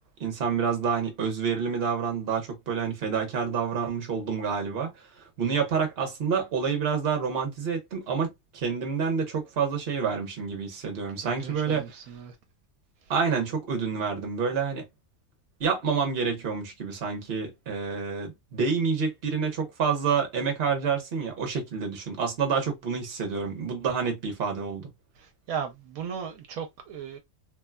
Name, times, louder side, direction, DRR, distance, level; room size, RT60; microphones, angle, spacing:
voice 1, 0.2-11.9 13.1-14.8 15.6-24.9, right 6 dB, 50° right, 1.0 m, -28 dB
voice 2, 11.2-12.3 25.2-27.2, right 7 dB, 85° right, 1.1 m, -36 dB
3.1 x 2.2 x 2.2 m
omnidirectional pair, 1.5 m